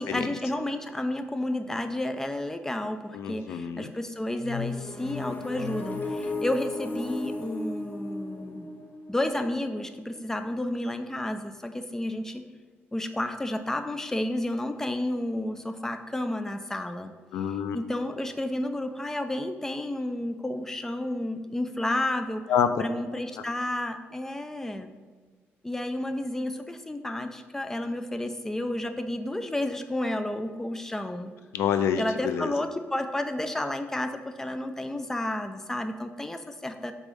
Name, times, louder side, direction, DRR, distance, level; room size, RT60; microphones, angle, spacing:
voice 1, 0.0-8.7 9.1-12.4 12.9-17.1 17.7-22.4 22.8-24.9 25.6-31.3 32.0-36.9, left 1 dB, 10° left, 7 dB, 0.4 m, -31 dB
voice 2, 3.1-3.9 17.3-17.8 22.5-22.8 31.5-32.5, left 8 dB, 90° left, 9 dB, 0.4 m, -27 dB
sound 1, 4.4-10.2, left 3 dB, 40° left, 0.8 m, -35 dB
5.0 x 3.6 x 5.3 m, 1.5 s
cardioid pair, 120°, 4 cm